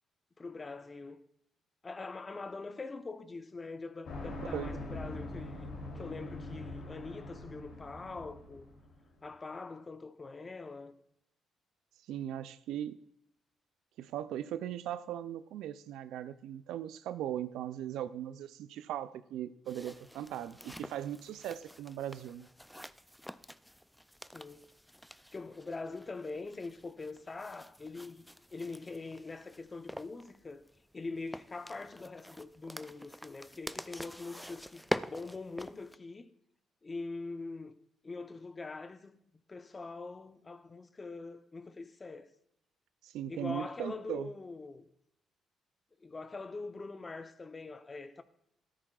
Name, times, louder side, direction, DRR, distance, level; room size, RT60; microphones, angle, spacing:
voice 1, 0.4-1.2 1.8-5.7 6.0-8.7 9.2-10.9 24.3-24.7 25.3-30.6 30.9-36.3 36.8-37.8 38.0-39.2 39.5-42.3 43.3-44.9 46.0-48.2, left 3 dB, 30° left, 0.7 m, -43 dB
sound 1, 4.0-9.0, left 2 dB, 70° left, 3.0 m, -43 dB
voice 2, 4.4-4.8 12.1-13.0 14.0-22.5 43.0-44.3, right 11 dB, 90° right, 0.4 m, -39 dB
sound 2, 19.7-36.0, equal, ahead, 0.4 m, -45 dB
13.5 x 13.0 x 2.4 m
cardioid pair, 90°, 0 cm